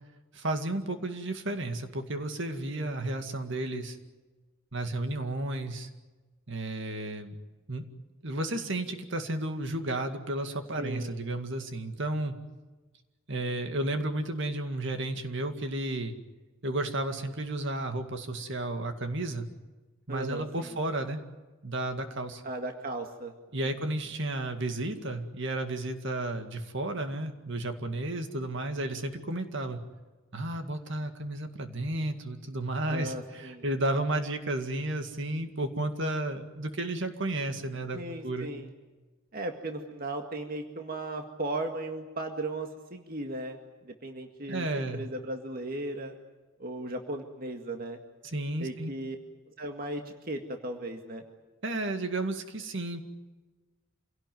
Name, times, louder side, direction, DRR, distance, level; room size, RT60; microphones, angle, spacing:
voice 1, 0.3-4.0 4.7-5.9 6.5-7.4 7.7-7.8 8.2-12.4 13.3-16.1 16.6-19.5 20.1-21.2 21.6-22.4 23.5-29.8 30.3-38.0 38.2-38.5 44.5-45.0 48.3-48.9 51.6-53.0, right 1 dB, 60° right, 6 dB, 2.2 m, -32 dB
voice 2, 2.7-3.2 10.8-11.2 20.1-20.8 22.4-23.3 23.6-23.7 32.9-33.6 37.9-38.7 39.3-46.2 46.6-48.0 48.6-49.2 49.5-51.2, right 2 dB, 45° right, 4 dB, 1.9 m, -37 dB
27.0 x 17.5 x 9.4 m, 1.3 s
head